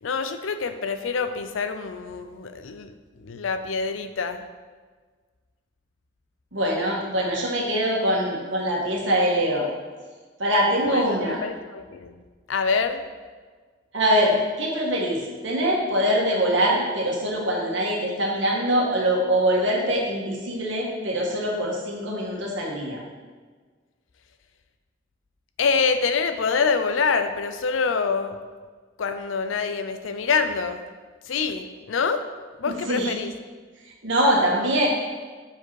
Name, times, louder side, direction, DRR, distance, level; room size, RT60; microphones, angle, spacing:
voice 1, 0.0-2.9 3.2-4.4 10.9-12.1 12.5-13.0 25.6-28.4 29.0-30.8 31.2-32.2 32.6-33.3, left 5 dB, 90° left, 9 dB, 0.5 m, -26 dB
voice 2, 6.5-9.7 10.4-11.4 13.9-23.0 32.6-33.1 34.0-34.9, equal, 70° right, -2 dB, 1.6 m, -23 dB
6.7 x 5.0 x 4.7 m, 1.5 s
head